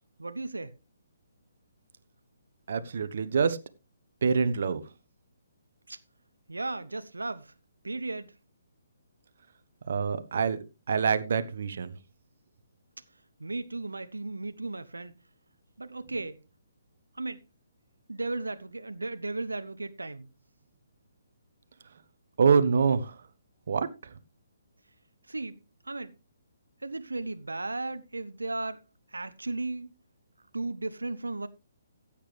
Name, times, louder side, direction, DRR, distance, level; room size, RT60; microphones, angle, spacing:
voice 1, 0.2-0.7 5.9-6.0 6.5-7.5 7.8-8.3 13.4-15.1 15.8-16.4 17.1-17.4 18.1-20.3 25.3-25.6 25.8-26.1 26.8-29.9 30.5-31.5, right 2 dB, 75° right, 0.8 m, -35 dB
voice 2, 2.7-3.6 4.2-4.8 9.9-10.6 10.9-12.0 22.4-23.2 23.7-24.1, right 5 dB, 55° right, 1.1 m, -25 dB
15.0 x 8.6 x 3.3 m
figure-of-eight pair, 135°, 0 cm